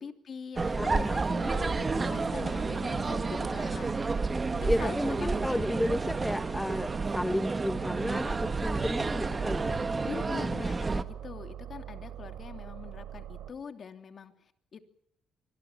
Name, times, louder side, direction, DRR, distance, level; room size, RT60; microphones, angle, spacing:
voice 1, 0.0-4.0 4.5-5.3 10.0-14.8, left 6 dB, 50° left, 6 dB, 3.0 m, -43 dB
sound 1, 0.6-11.0, right 3 dB, 30° right, 1.5 m, -30 dB
voice 2, 0.8-1.3 4.6-9.8, equal, 5° left, 10 dB, 1.0 m, -32 dB
sound 2, 1.4-4.2 4.5-7.3 7.7-10.4 10.9-13.5, right 10 dB, 85° right, 3.3 m, -43 dB
25.5 x 22.0 x 7.3 m, 0.71 s
cardioid pair, 90°, 0 cm